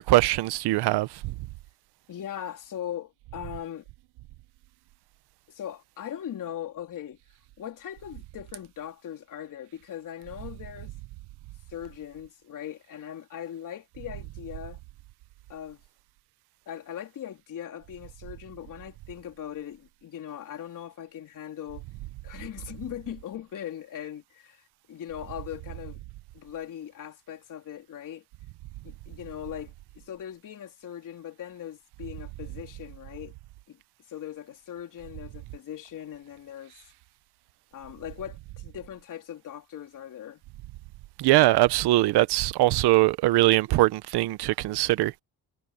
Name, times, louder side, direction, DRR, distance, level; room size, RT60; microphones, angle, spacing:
voice 1, 0.0-1.3 41.2-45.1, right 17 dB, 80° right, 0.9 m, -22 dB
voice 2, 2.1-3.8 5.5-7.2 7.6-10.9 11.7-14.8 15.5-15.8 16.7-21.8 22.2-26.0 26.3-28.2 28.8-33.4 33.7-33.8 34.1-36.7 37.7-40.4, left 10 dB, 55° left, 3.6 m, -40 dB
cardioid pair, 145°, 39 cm